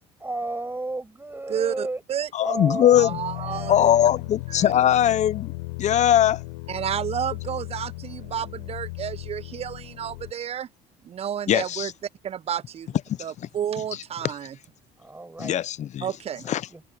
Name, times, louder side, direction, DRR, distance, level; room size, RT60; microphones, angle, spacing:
voice 1, 0.0-2.0 2.4-3.0 3.4-4.3 15.0-15.6 16.4-16.8, right 2 dB, 15° right, 6.9 m, -33 dB
voice 2, 1.5-2.3 3.0-3.9 4.5-4.7 6.7-10.7 11.0-11.9 12.2-14.6 16.0-16.5, right 9 dB, 40° right, 0.6 m, -31 dB
voice 3, 2.3-3.2 3.7-5.5 5.8-6.4 11.5-11.9 13.1-13.5 14.2-14.3 15.4-16.1 16.5-16.7, left 11 dB, 50° left, 0.7 m, -21 dB
sound 1, 2.9-10.3, left 25 dB, 90° left, 4.3 m, -36 dB
supercardioid pair, 80°, 16 cm